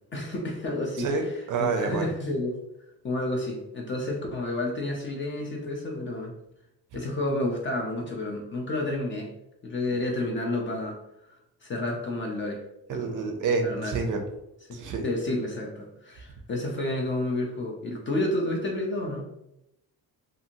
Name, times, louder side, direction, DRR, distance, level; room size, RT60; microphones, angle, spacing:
voice 1, 0.1-1.1 1.6-2.6 3.0-6.3 6.9-9.3 9.6-11.0 11.6-12.6 12.9-13.3 13.6-14.0 14.7-14.8 15.0-19.2, left 1 dB, 30° left, -1 dB, 0.4 m, -30 dB
voice 2, 1.0-2.1 12.9-14.2 14.7-15.1, right 4 dB, 50° right, 4 dB, 0.4 m, -28 dB
2.6 x 2.5 x 2.8 m, 0.84 s
cardioid pair, 175°, 40 cm